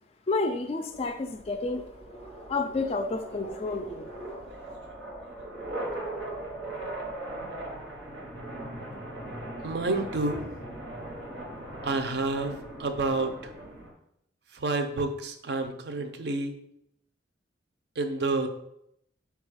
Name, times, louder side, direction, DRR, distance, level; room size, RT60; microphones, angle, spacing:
voice 1, 0.3-1.9 2.5-4.1, left 3 dB, 35° left, 8 dB, 0.3 m, -30 dB
sound 1, 0.9-13.9, right 1 dB, 90° right, 1.0 m, -39 dB
voice 2, 9.6-10.5 11.8-13.5 14.5-16.5 18.0-18.5, right 3 dB, 60° right, 6 dB, 0.5 m, -29 dB
4.8 x 2.3 x 4.7 m, 0.76 s
head